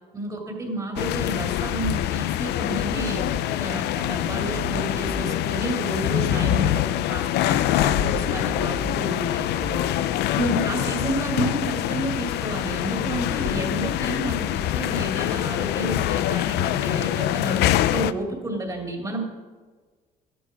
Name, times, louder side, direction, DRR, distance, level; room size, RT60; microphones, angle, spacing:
voice 1, 0.1-9.5 10.4-19.2, right 2 dB, 20° right, 1 dB, 2.4 m, -31 dB
sound 1, 1.0-18.1, left 13 dB, 80° left, 0.5 m, -25 dB
sound 2, 2.9-3.8 4.5-5.8 6.2-7.3 7.9-9.8, right 6 dB, 45° right, 2.3 m, -37 dB
voice 2, 3.1-3.8 9.5-10.5, left 5 dB, 60° left, 2 dB, 1.4 m, -37 dB
12.0 x 10.0 x 5.0 m, 1.5 s
cardioid pair, 110°, 17 cm